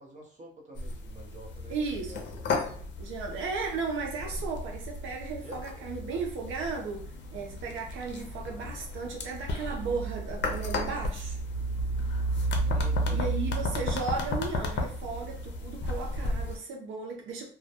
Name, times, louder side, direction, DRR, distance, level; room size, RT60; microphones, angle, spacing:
voice 1, 0.0-2.5 5.4-6.5 12.6-13.3, right 1 dB, 35° right, 0.8 m, -48 dB
sound 1, 0.8-16.6, equal, 65° left, 0.5 m, -33 dB
voice 2, 1.7-2.2 3.0-11.4 12.6-12.7 13.1-17.5, right 4 dB, 80° right, 0.5 m, -35 dB
2.2 x 2.1 x 2.7 m
cardioid pair, 90°, 20 cm